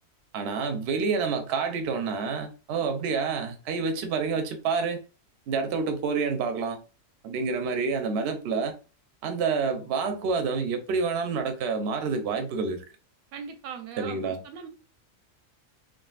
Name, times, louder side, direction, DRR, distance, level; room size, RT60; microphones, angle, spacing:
voice 1, 0.3-5.0 5.5-6.8 7.2-8.8 9.2-12.8 14.0-14.4, right 5 dB, 65° right, 0.7 m, -28 dB
voice 2, 13.3-14.7, right 7 dB, 85° right, 1.1 m, -40 dB
3.6 x 2.1 x 2.3 m
omnidirectional pair, 1.5 m